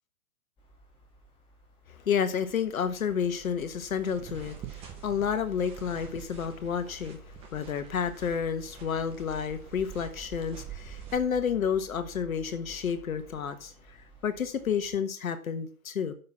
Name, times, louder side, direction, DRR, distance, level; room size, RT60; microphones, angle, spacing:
sound 1, 0.6-15.0, right 5 dB, 10° left, 2.2 m, -50 dB
voice 1, 2.0-7.2 7.5-13.7 14.2-16.1, left 7 dB, 65° left, 9 dB, 1.4 m, -30 dB
sound 2, 3.9-11.2, right 10 dB, 15° right, 1.0 m, -48 dB
6.7 x 6.5 x 7.2 m, 0.42 s
hypercardioid pair, 140°, 44 cm